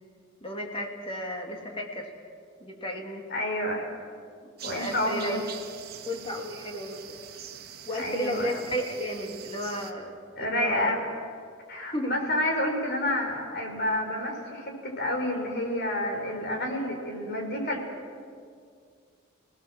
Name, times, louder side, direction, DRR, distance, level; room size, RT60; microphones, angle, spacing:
voice 1, 0.4-2.1 2.6-3.2 4.6-5.5 6.0-7.2 7.9-10.9 11.9-12.1, equal, 30° left, 1 dB, 2.9 m, -33 dB
voice 2, 3.3-3.9 4.6-5.4 8.0-8.6 10.4-11.0 11.7-17.8, left 1 dB, 55° left, 2 dB, 5.1 m, -29 dB
sound 1, 4.6-9.9, right 8 dB, 55° right, 1.8 m, -44 dB
29.0 x 18.5 x 7.6 m, 2.2 s
head